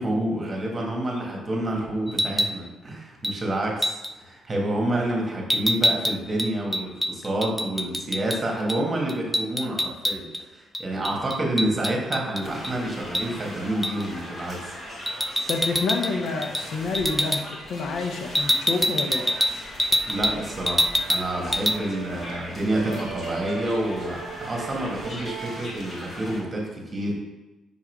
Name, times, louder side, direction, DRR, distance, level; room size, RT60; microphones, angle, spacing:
voice 1, 0.0-14.7 20.0-27.1, right 1 dB, 30° right, -1 dB, 1.5 m, -28 dB
sound 1, 2.1-2.6 3.2-3.4 3.8-4.1 5.5-8.4 8.7-8.8 9.1-10.4 10.7-12.7 13.1-13.3 13.8-14.1 15.1-16.1 16.4-16.7 16.9-17.4 18.3-20.4 20.7-21.3 21.5-21.8, equal, 5° right, 0.3 m, -25 dB
sound 2, 12.4-26.4, equal, 40° left, 1.7 m, -39 dB
voice 2, 15.5-19.3, left 3 dB, 70° left, 4 dB, 0.7 m, -28 dB
Brass instrument, 20.5-25.7, right 6 dB, 70° right, 0.7 m, -39 dB
5.7 x 3.7 x 4.6 m, 1.1 s
cardioid pair, 90°, 0 cm